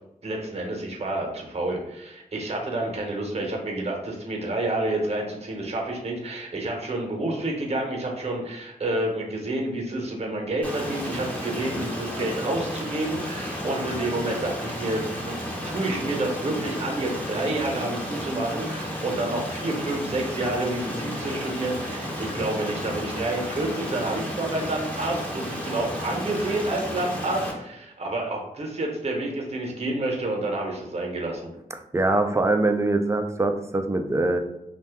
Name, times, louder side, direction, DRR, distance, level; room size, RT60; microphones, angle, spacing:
voice 1, 0.2-31.5, right 2 dB, 40° right, 1 dB, 0.8 m, -29 dB
Stream, 10.6-27.5, equal, 10° left, 0.7 m, -33 dB
voice 2, 31.9-34.4, right 2 dB, 20° right, 6 dB, 0.3 m, -23 dB
2.6 x 2.2 x 3.4 m, 0.85 s
wide cardioid pair, 80°, 16 cm